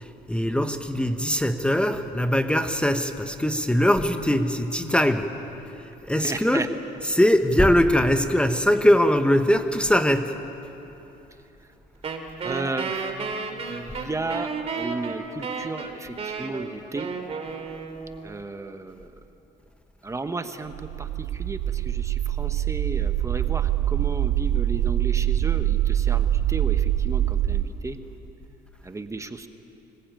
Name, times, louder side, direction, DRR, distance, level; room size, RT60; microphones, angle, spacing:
voice 1, 0.0-5.3 5.6-6.7 7.0-10.3 13.9-14.0, equal, 5° left, 7 dB, 1.1 m, -22 dB
voice 2, 6.2-6.7 12.4-13.2 13.7-17.1 18.2-19.1 20.0-28.0 28.8-29.5, right 3 dB, 15° right, 8 dB, 1.2 m, -34 dB
Wind instrument woodwind instrument, 12.0-18.3, right 5 dB, 35° right, 3.1 m, -32 dB
sound 1, 20.7-27.6, right 12 dB, 80° right, 0.8 m, -24 dB
25.0 x 21.0 x 9.2 m, 3.0 s
cardioid pair, 110°, 17 cm